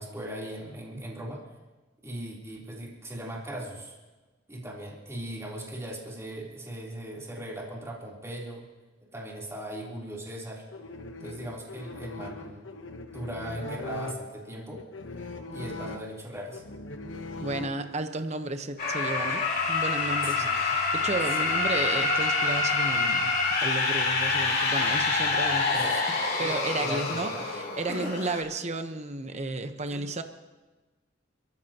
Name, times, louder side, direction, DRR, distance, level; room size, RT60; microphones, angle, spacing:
voice 1, 0.0-1.4 2.0-3.9 4.5-8.7 9.1-10.6 11.2-12.7 13.1-14.8 15.5-16.6 20.2-20.5 21.3-21.4 25.4-26.1 26.4-27.5 27.9-28.1 29.9-30.1, right 1 dB, 15° right, -4 dB, 3.6 m, -39 dB
sound 1, 10.7-18.2, left 2 dB, 85° left, 1.1 m, -40 dB
voice 2, 17.4-23.3 23.6-30.2, right 2 dB, 35° right, 8 dB, 1.0 m, -33 dB
sound 2, 18.8-28.4, left 3 dB, 55° left, 3.2 m, -26 dB
29.5 x 14.5 x 3.0 m, 1.2 s
head